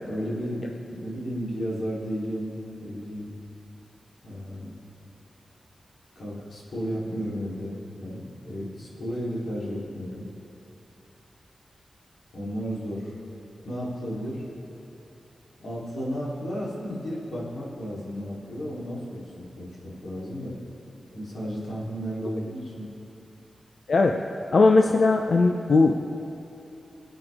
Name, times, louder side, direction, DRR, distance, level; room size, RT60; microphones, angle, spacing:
voice 1, 0.0-3.4 4.2-4.7 6.2-10.3 12.3-13.1 13.7-14.4 15.6-20.6 21.1-22.9, equal, 85° left, -7 dB, 3.5 m, -33 dB
voice 2, 24.5-26.0, left 3 dB, 55° left, 3 dB, 0.6 m, -19 dB
24.5 x 8.9 x 3.6 m, 2.8 s
wide cardioid pair, 155°, 0 cm